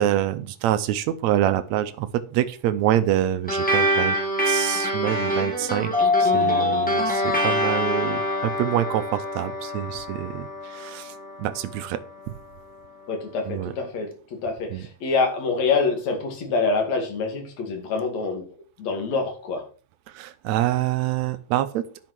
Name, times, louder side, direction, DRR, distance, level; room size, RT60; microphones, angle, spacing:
voice 1, 0.0-4.2 4.5-11.1 11.4-12.0 13.5-13.7 14.7-14.9 20.1-21.9, right 12 dB, 80° right, 11 dB, 1.6 m, -26 dB
sound 1, 3.5-12.3, equal, 5° left, 1.5 m, -26 dB
Mallet percussion, 5.9-8.4, left 4 dB, 35° right, 0.8 m, -24 dB
voice 2, 13.1-14.1 14.4-18.4 18.8-19.6, left 4 dB, 55° left, 3 dB, 3.5 m, -25 dB
11.0 x 6.2 x 5.9 m, 0.38 s
omnidirectional pair, 4.0 m